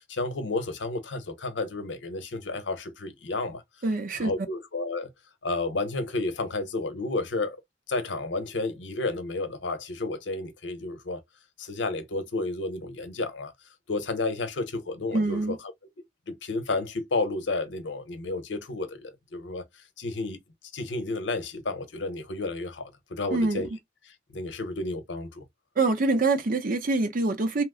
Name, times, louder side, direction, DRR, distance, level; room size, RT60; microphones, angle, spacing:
voice 1, 0.0-3.6 4.2-5.1 5.4-7.6 7.9-11.2 11.6-13.5 13.9-15.6 16.3-19.6 20.0-20.4 20.7-23.7 24.3-25.4, left 2 dB, 75° left, 0.8 m, -31 dB
voice 2, 3.8-4.3 15.1-15.6 23.3-23.7 25.8-27.6, right 3 dB, 50° right, 0.6 m, -25 dB
2.9 x 2.0 x 3.6 m
head